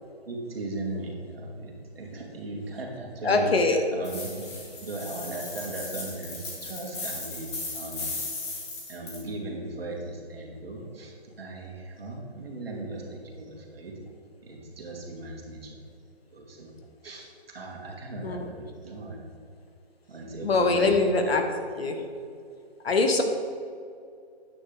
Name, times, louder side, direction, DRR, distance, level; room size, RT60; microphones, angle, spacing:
voice 1, 0.3-4.5 4.8-8.1 8.9-13.9 14.4-15.8 16.3-16.7 17.0-19.2 20.1-21.3, right 2 dB, 65° right, -1 dB, 2.2 m, -37 dB
voice 2, 3.2-3.8 18.2-18.5 20.4-21.4 21.8-22.0 22.8-23.2, left 3 dB, 70° left, 4 dB, 1.3 m, -23 dB
sound 1, 4.0-9.2, left 3 dB, 25° left, 1.6 m, -37 dB
9.2 x 8.2 x 3.5 m, 2.4 s
hypercardioid pair, 175°, 32 cm